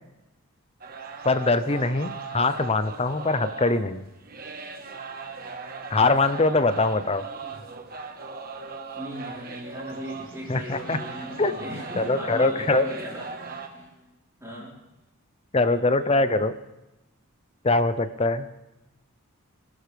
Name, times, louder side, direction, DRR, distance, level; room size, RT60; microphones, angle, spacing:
sound 1, 0.8-13.7, right 4 dB, 40° right, 1.3 m, -39 dB
voice 1, 1.2-4.0 5.9-7.2 10.5-11.0 11.4-11.5 12.0-12.9 15.5-16.5 17.6-18.5, left 3 dB, 25° left, 12 dB, 0.7 m, -22 dB
voice 2, 7.2-7.6 8.9-13.3 14.4-14.7 15.5-16.3, equal, 15° right, -6 dB, 4.5 m, -38 dB
Snare drum, 9.2-14.0, equal, 10° left, 7.3 m, -49 dB
26.0 x 12.5 x 3.5 m, 0.98 s
head